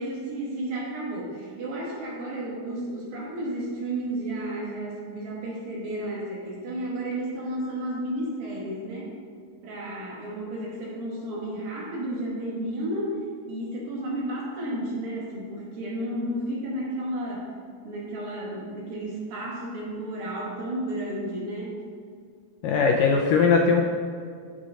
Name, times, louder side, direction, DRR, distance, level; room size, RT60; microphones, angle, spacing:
voice 1, 0.0-9.1 9.6-13.2 13.5-17.4 17.8-21.8, right 1 dB, 65° right, -5 dB, 4.1 m, -32 dB
voice 2, 22.6-23.8, left 5 dB, 80° left, 1 dB, 2.0 m, -20 dB
14.5 x 6.4 x 4.1 m, 2.1 s
omnidirectional pair, 4.5 m